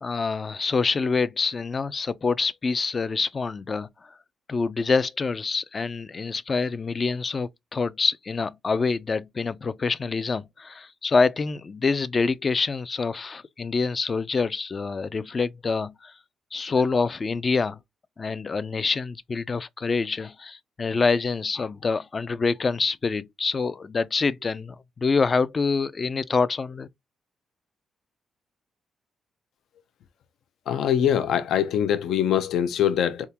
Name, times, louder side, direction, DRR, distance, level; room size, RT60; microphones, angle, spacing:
voice 1, 0.0-4.1 4.5-16.1 16.5-17.8 18.2-26.9, left 4 dB, 30° left, 0.3 m, -26 dB
voice 2, 30.7-33.2, left 9 dB, 80° left, 0.6 m, -23 dB
4.1 x 3.6 x 2.8 m
cardioid pair, 130°, 0 cm